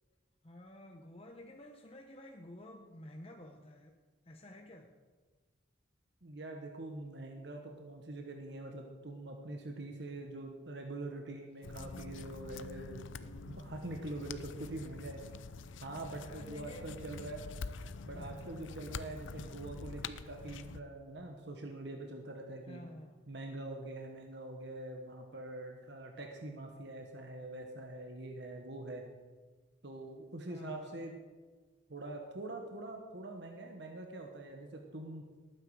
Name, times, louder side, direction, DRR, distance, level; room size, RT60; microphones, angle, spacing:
voice 1, 0.4-4.0 4.2-4.9 16.2-17.0 18.1-18.5 22.7-23.2 30.5-31.1, left 1 dB, 30° left, 3 dB, 0.9 m, -51 dB
voice 2, 6.2-15.2 15.8-17.5 18.0-22.8 23.3-29.0 29.8-31.2 31.9-35.3, right 2 dB, 60° right, 2 dB, 1.4 m, -44 dB
sound 1, 11.6-20.8, left 4 dB, 80° left, 0.6 m, -46 dB
18.5 x 9.4 x 4.9 m, 1.4 s
head